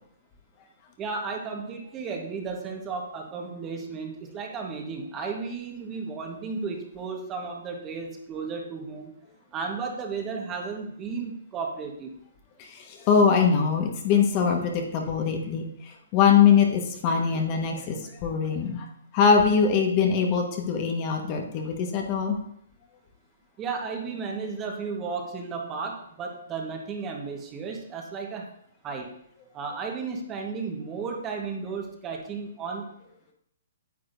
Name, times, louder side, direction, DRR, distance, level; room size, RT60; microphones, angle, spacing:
voice 1, 1.0-9.1 9.5-12.1 17.3-17.4 23.6-28.5 28.8-29.1 29.5-32.9, right 5 dB, 25° right, 1 dB, 1.4 m, -34 dB
voice 2, 12.6-18.9 19.1-22.4, left 6 dB, 35° left, 2 dB, 1.4 m, -22 dB
9.4 x 8.4 x 2.7 m, 0.70 s
hypercardioid pair, 130°, 0 cm